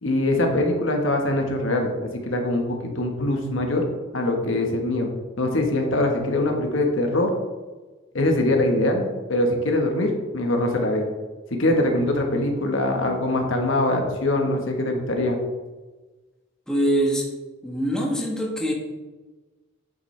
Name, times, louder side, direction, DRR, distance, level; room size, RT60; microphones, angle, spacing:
voice 1, 0.0-3.8 4.1-5.1 5.4-7.3 8.1-11.1 11.5-15.4, left 1 dB, 80° left, 2 dB, 1.3 m, -23 dB
voice 2, 16.7-17.3 17.6-18.7, right 1 dB, 5° left, -2 dB, 1.2 m, -23 dB
8.3 x 6.8 x 3.3 m, 1.2 s
head